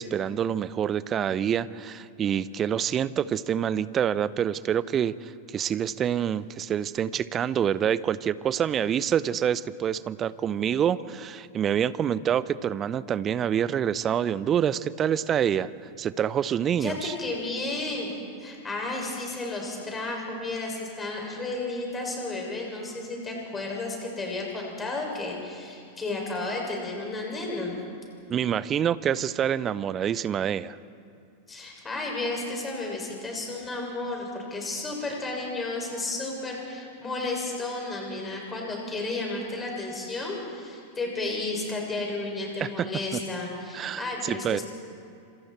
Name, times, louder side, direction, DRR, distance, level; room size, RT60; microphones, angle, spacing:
voice 1, 0.0-15.7 16.0-17.1 28.3-30.8 42.6-42.9 43.7-44.6, right 9 dB, 25° right, 18 dB, 0.7 m, -26 dB
voice 2, 16.8-18.1 18.4-27.7 31.5-44.6, left 2 dB, 15° left, -1 dB, 6.7 m, -32 dB
27.5 x 26.0 x 4.6 m, 2.5 s
figure-of-eight pair, 90°, 0 cm